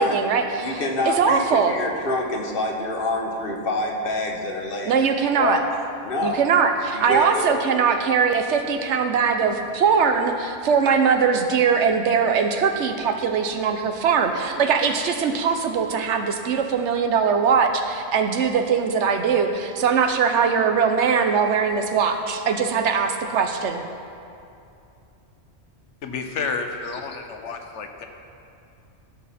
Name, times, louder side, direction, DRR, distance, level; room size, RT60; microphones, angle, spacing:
voice 1, 0.0-1.8 4.9-5.6 6.2-23.8, right 6 dB, 80° right, 6 dB, 1.0 m, -21 dB
voice 2, 0.6-5.6 6.0-6.4 6.9-7.6, left 2 dB, 50° left, 1 dB, 1.2 m, -26 dB
voice 3, 26.0-28.1, left 4 dB, 85° left, 6 dB, 1.1 m, -30 dB
15.5 x 6.3 x 4.2 m, 2.6 s
omnidirectional pair, 1.2 m